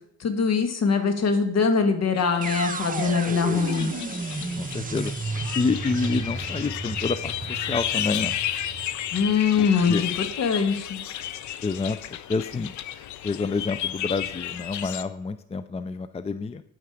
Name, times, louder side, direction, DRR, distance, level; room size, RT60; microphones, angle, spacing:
voice 1, 0.2-4.0 9.1-11.0, left 5 dB, 55° left, 7 dB, 2.0 m, -23 dB
sound 1, 2.1-15.0, left 11 dB, 75° left, 0.8 m, -33 dB
sound 2, 2.4-10.4, right 4 dB, 25° right, 1.1 m, -33 dB
voice 2, 4.6-5.1 5.5-8.4 9.6-10.0 11.6-12.8 13.2-16.6, left 4 dB, 20° left, 13 dB, 0.5 m, -28 dB
9.4 x 9.4 x 5.0 m, 0.78 s
cardioid pair, 90°, 30 cm